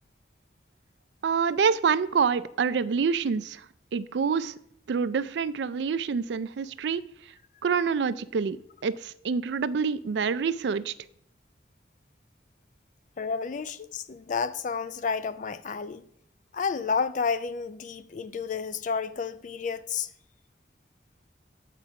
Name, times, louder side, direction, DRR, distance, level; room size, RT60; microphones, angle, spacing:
voice 1, 1.2-3.6 3.9-4.5 4.9-7.0 7.6-8.6 8.8-10.9, right 5 dB, 80° right, 0.4 m, -26 dB
voice 2, 13.2-16.0 16.5-20.1, left 5 dB, 45° left, 0.4 m, -31 dB
7.3 x 5.1 x 5.7 m
head